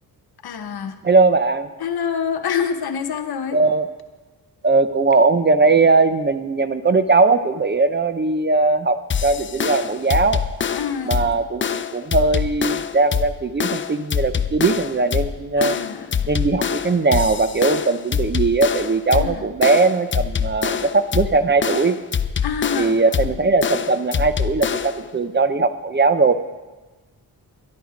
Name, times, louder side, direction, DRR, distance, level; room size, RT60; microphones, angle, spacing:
voice 1, 0.4-1.0 1.8-3.6 10.7-11.4 15.6-16.3 19.1-19.5 22.4-23.3, left 7 dB, 70° left, 7 dB, 1.1 m, -27 dB
voice 2, 1.0-1.7 3.5-3.9 4.6-10.4 11.0-15.8 16.3-22.0 22.8-26.3, right 3 dB, 30° right, 11 dB, 0.6 m, -19 dB
sound 1, 9.1-25.1, left 7 dB, 30° left, 0.4 m, -25 dB
12.5 x 11.5 x 5.1 m, 1.2 s
wide cardioid pair, 105°, 39 cm